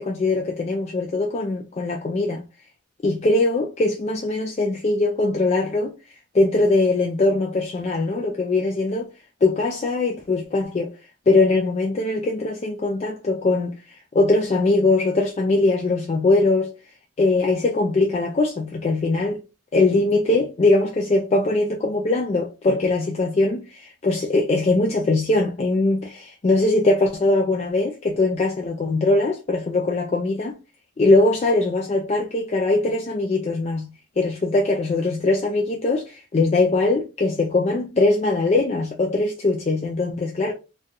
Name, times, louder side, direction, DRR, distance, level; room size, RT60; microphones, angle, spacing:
voice 1, 0.0-2.4 3.0-6.0 6.3-9.1 9.4-10.9 11.3-16.7 17.2-19.4 19.7-30.6 31.0-40.5, left 2 dB, 30° left, 0.3 m, -21 dB
3.8 x 2.3 x 2.6 m
head